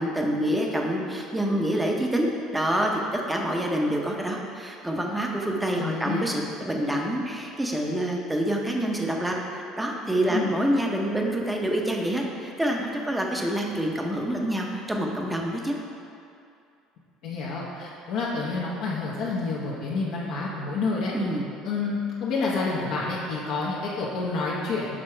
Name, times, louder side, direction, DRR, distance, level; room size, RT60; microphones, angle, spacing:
voice 1, 0.0-15.8 21.1-21.5, right 1 dB, 5° right, 0 dB, 0.7 m, -27 dB
voice 2, 5.7-6.2 10.3-10.5 17.2-21.1 21.6-25.0, left 3 dB, 70° left, -5 dB, 0.8 m, -29 dB
6.4 x 3.6 x 4.4 m, 2.5 s
cardioid pair, 115°, 0 cm